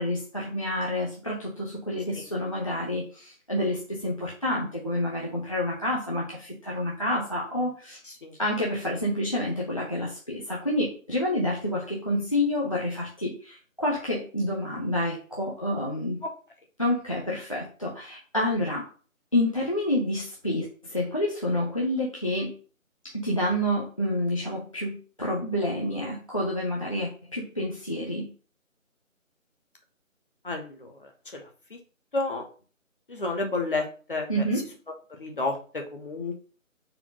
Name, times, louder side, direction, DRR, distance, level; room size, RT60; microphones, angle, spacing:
voice 1, 0.0-8.0 8.4-16.2 16.8-18.9 19.3-22.6 23.1-28.3 34.3-34.7, left 1 dB, 25° left, -4 dB, 0.8 m, -28 dB
voice 2, 32.1-32.4 33.1-33.8 34.1-34.3 35.2-36.4, left 3 dB, 40° left, 2 dB, 1.3 m, -29 dB
4.4 x 4.1 x 5.3 m, 0.39 s
figure-of-eight pair, 160°, 41 cm